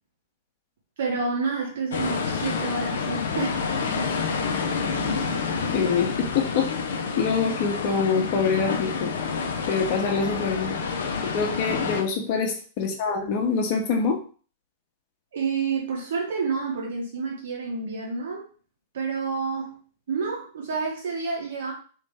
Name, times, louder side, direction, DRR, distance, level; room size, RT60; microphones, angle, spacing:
voice 1, 1.0-3.6 11.7-11.9 15.3-18.4 18.9-19.8 20.1-21.7, right 4 dB, 65° right, -2 dB, 1.4 m, -29 dB
sound 1, 1.9-12.0, left 5 dB, 65° left, 0.6 m, -28 dB
voice 2, 5.7-6.7 7.2-9.1 9.7-10.8 11.2-14.2, left 5 dB, 45° left, 2 dB, 1.0 m, -25 dB
3.2 x 3.2 x 3.5 m, 0.40 s
figure-of-eight pair, 100°, 0 cm